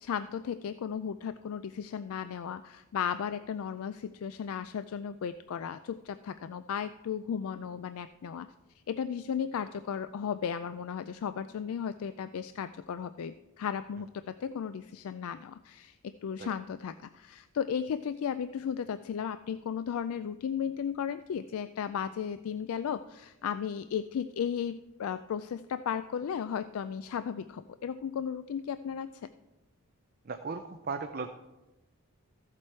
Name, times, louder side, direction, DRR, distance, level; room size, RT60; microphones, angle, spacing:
voice 1, 0.0-8.5 8.9-16.0 16.2-29.1, left 7 dB, 75° left, 12 dB, 0.3 m, -35 dB
voice 2, 30.2-31.3, right 4 dB, 45° right, 7 dB, 0.5 m, -36 dB
14.0 x 7.4 x 4.4 m, 1.1 s
head